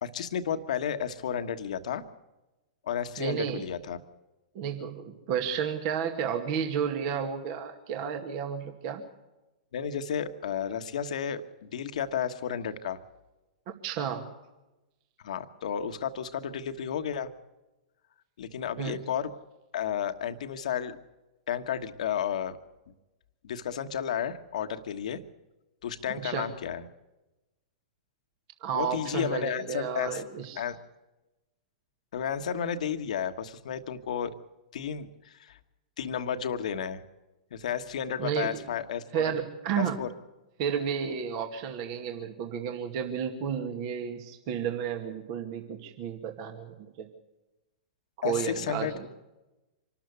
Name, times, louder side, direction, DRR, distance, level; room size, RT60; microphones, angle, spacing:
voice 1, 0.0-2.0 2.9-4.0 9.7-13.0 15.2-17.3 18.4-19.3 19.7-21.0 21.5-22.6 23.4-25.2 25.8-26.8 28.7-30.2 30.6-30.8 32.1-34.3 34.7-35.6 36.0-37.0 37.5-39.3 39.8-40.1 48.2-48.9, left 8 dB, 70° left, 9 dB, 1.3 m, -32 dB
voice 2, 3.2-3.7 4.5-9.0 13.7-14.3 18.8-19.0 26.1-26.5 28.6-30.6 38.2-38.6 39.1-40.0 40.6-47.1 48.2-49.1, right 7 dB, 50° right, 5 dB, 2.2 m, -32 dB
25.5 x 13.0 x 8.1 m, 1.0 s
hypercardioid pair, 115°, 4 cm